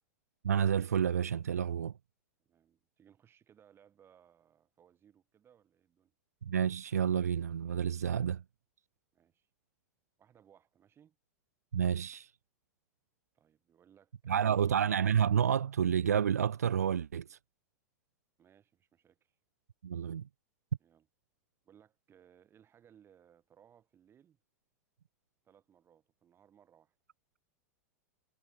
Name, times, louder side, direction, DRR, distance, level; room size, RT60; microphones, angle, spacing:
voice 1, 0.4-1.9 6.4-8.4 11.7-12.3 14.3-17.4 19.8-20.2, right 8 dB, 85° right, 0.4 m, -29 dB
voice 2, 2.5-6.1 9.1-9.5 10.2-11.2 13.3-14.8 18.4-19.4 20.8-21.1 21.6-24.4 25.4-26.9, right 9 dB, 30° right, 5.8 m, -64 dB
hypercardioid pair, 95°, 8 cm